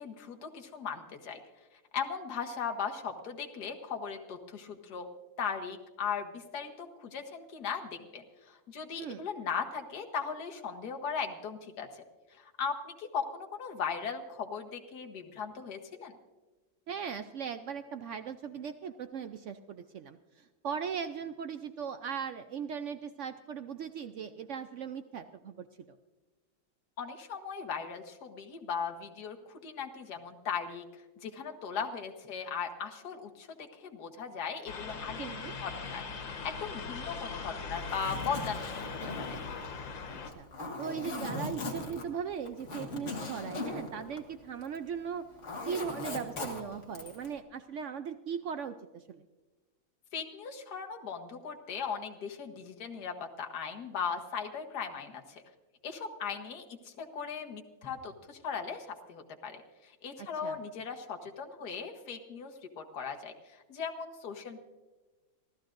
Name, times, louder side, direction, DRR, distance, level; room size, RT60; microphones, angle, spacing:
voice 1, 0.0-1.4 1.9-5.1 5.4-12.0 12.4-16.1 27.0-30.8 31.2-35.3 35.6-39.4 50.1-55.4 55.8-59.6 60.0-63.3 63.7-64.6, left 6 dB, 60° left, 4 dB, 1.8 m, -38 dB
voice 2, 16.9-26.0 35.2-35.6 40.1-40.5 40.8-45.3 45.6-49.2 60.2-60.6, right 7 dB, 85° right, 9 dB, 0.6 m, -39 dB
sound 1, 34.7-40.3, left 5 dB, 85° left, 2.1 m, -40 dB
Zipper (clothing), 37.8-44.9 45.2-47.3, left 2 dB, 40° left, 1.9 m, -39 dB
26.0 x 14.5 x 2.6 m, 1.2 s
omnidirectional pair, 2.0 m